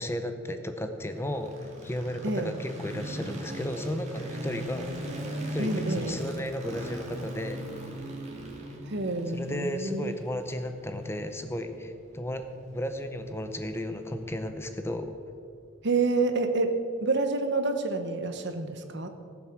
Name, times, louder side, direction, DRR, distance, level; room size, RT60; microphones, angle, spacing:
voice 1, 0.0-5.0 5.5-7.8 9.3-12.4 12.7-15.1, left 1 dB, 10° left, 7 dB, 0.7 m, -34 dB
sound 1, 1.1-15.2, right 1 dB, 35° right, 2.0 m, -40 dB
voice 2, 5.6-6.2 8.9-10.1 15.8-19.1, right 3 dB, 55° right, 7 dB, 1.1 m, -28 dB
17.5 x 7.7 x 6.1 m, 2.3 s
head